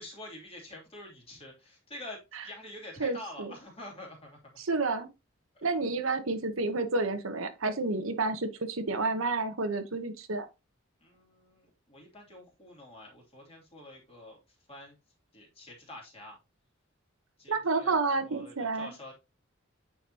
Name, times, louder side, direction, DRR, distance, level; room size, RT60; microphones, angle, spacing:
voice 1, 0.0-4.6 5.5-5.7 6.0-6.1 11.0-14.4 14.7-15.0 15.3-16.4 17.4-19.1, left 1 dB, 30° left, 2.7 m, -47 dB
voice 2, 3.0-3.5 4.6-5.1 5.6-10.5 17.5-18.9, right 3 dB, 75° right, 1.0 m, -30 dB
8.9 x 4.7 x 2.9 m
head